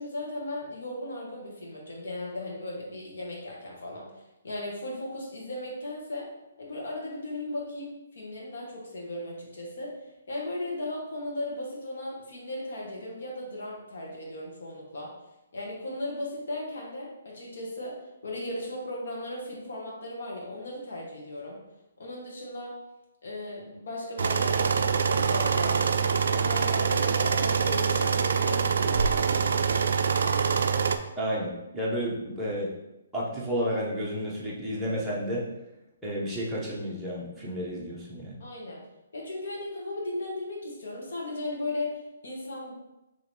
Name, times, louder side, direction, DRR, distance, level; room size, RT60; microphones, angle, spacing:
voice 1, 0.0-4.0 4.4-6.3 6.6-15.1 15.5-18.0 18.2-21.6 22.0-22.7 23.2-29.8 38.4-38.8 39.1-42.7, left 1 dB, 65° left, -3 dB, 1.3 m, -36 dB
sound 1, 24.2-31.0, right 6 dB, 65° right, 0.3 m, -25 dB
voice 2, 31.2-32.7 33.1-35.5 36.0-38.4, equal, ahead, -9 dB, 0.7 m, -31 dB
3.0 x 2.9 x 4.2 m, 0.96 s
hypercardioid pair, 170°, 0 cm